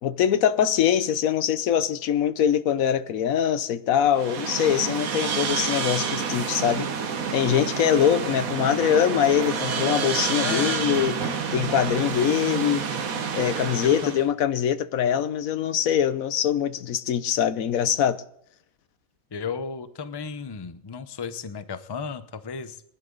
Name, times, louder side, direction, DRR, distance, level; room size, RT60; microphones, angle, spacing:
voice 1, 0.0-6.9 7.3-12.8 13.3-18.2, left 9 dB, 80° left, 1.2 m, -23 dB
sound 1, 4.1-14.3, right 6 dB, 85° right, 1.6 m, -28 dB
voice 2, 10.4-10.8 13.8-14.2 19.3-22.8, left 5 dB, 25° left, 0.6 m, -34 dB
20.0 x 11.0 x 3.9 m
omnidirectional pair, 1.4 m